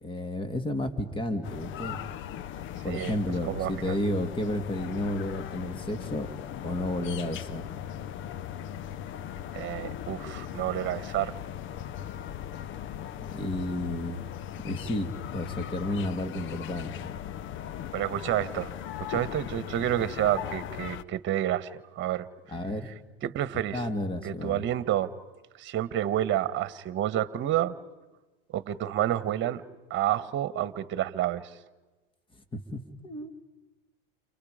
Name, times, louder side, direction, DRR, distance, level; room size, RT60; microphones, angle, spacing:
voice 1, 0.0-2.0 2.8-6.3 6.6-7.7 13.2-14.2 14.6-17.2 22.5-22.9 23.7-24.6 32.5-33.3, left 1 dB, 15° left, 8 dB, 2.7 m, -32 dB
sound 1, 1.4-21.0, left 10 dB, 40° left, 0.9 m, -38 dB
voice 2, 3.5-4.0 9.5-11.3 17.9-18.7 19.1-22.3 23.2-23.8 24.2-25.1 25.5-27.7 28.5-29.6 29.9-31.5, right 12 dB, 40° right, 15 dB, 1.6 m, -29 dB
30.0 x 29.5 x 5.2 m, 1.1 s
hypercardioid pair, 95°, 30 cm